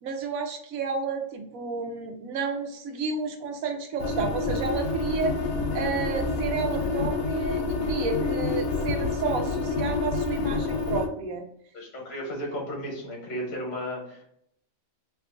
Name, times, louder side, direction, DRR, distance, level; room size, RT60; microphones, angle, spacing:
voice 1, 0.0-5.3 5.7-11.4, right 5 dB, 85° right, 4 dB, 1.1 m, -31 dB
sound 1, 4.0-11.1, left 4 dB, 85° left, 1.1 m, -28 dB
sound 2, 4.7-8.1, right 2 dB, 35° left, 0.8 m, -41 dB
voice 2, 11.7-14.3, equal, 65° left, -1 dB, 1.2 m, -34 dB
3.0 x 2.4 x 3.5 m, 0.71 s
omnidirectional pair, 1.4 m